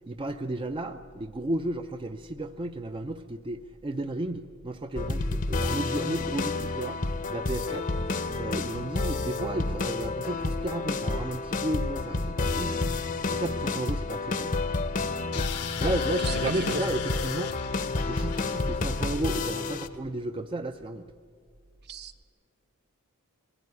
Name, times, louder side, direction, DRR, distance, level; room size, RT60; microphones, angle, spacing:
voice 1, 0.1-7.0 7.3-7.9 8.3-12.8 13.3-14.6 15.3-17.6 18.0-21.1, right 1 dB, 25° right, 7 dB, 0.5 m, -33 dB
sound 1, 5.0-19.9, left 3 dB, 40° left, 0.7 m, -30 dB
sound 2, 15.3-20.1, left 6 dB, 90° left, 1.1 m, -38 dB
voice 2, 16.2-16.8 21.8-22.2, right 3 dB, 50° right, 8 dB, 0.9 m, -36 dB
22.5 x 15.0 x 9.7 m, 2.2 s
head